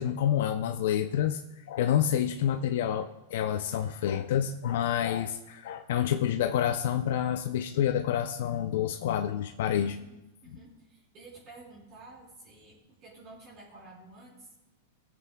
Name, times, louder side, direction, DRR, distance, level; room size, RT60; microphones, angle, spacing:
voice 1, 0.0-1.4 1.7-10.0, left 10 dB, 70° left, 7 dB, 0.5 m, -28 dB
voice 2, 9.8-14.5, right 2 dB, 40° right, -6 dB, 3.6 m, -51 dB
20.0 x 7.7 x 2.3 m, 1.0 s
hypercardioid pair, 135°, 0 cm